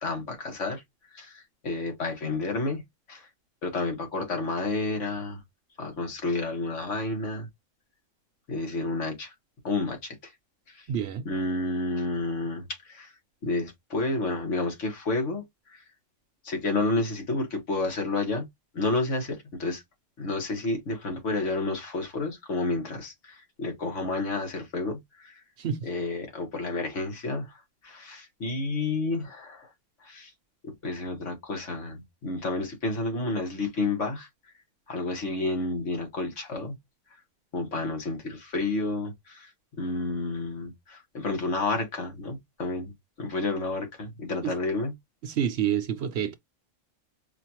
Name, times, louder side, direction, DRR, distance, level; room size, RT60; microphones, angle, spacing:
voice 1, 0.0-0.8 1.1-2.8 3.1-3.3 3.6-5.4 5.8-7.5 8.5-9.3 9.6-10.3 10.7-10.9 11.3-13.1 13.4-15.8 16.4-18.5 18.7-19.8 20.2-25.4 25.9-29.7 30.0-30.3 30.8-34.3 34.9-36.8 37.5-39.5 39.8-44.9, left 2 dB, 70° left, 1.8 m, -30 dB
voice 2, 10.9-11.3 25.6-25.9 44.4-44.5 45.2-46.4, right 9 dB, 65° right, 0.8 m, -28 dB
4.8 x 2.4 x 2.9 m
omnidirectional pair, 1.3 m